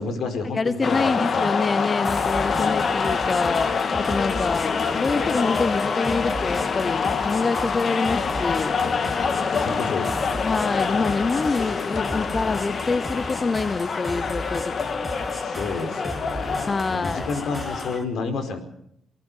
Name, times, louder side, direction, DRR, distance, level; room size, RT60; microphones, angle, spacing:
voice 1, 0.0-1.5 2.4-2.9 9.5-10.3 10.9-11.2 15.4-18.6, left 4 dB, 70° left, 8 dB, 4.8 m, -31 dB
voice 2, 0.5-4.7 4.9-8.8 10.4-14.9 16.7-17.3, left 4 dB, 30° left, 15 dB, 0.8 m, -26 dB
sound 1, 0.8-18.0, left 5 dB, 45° left, 1.7 m, -26 dB
sound 2, 2.0-18.0, equal, 10° left, 4.1 m, -36 dB
28.5 x 19.5 x 5.7 m, 0.71 s
cardioid pair, 90°, 0 cm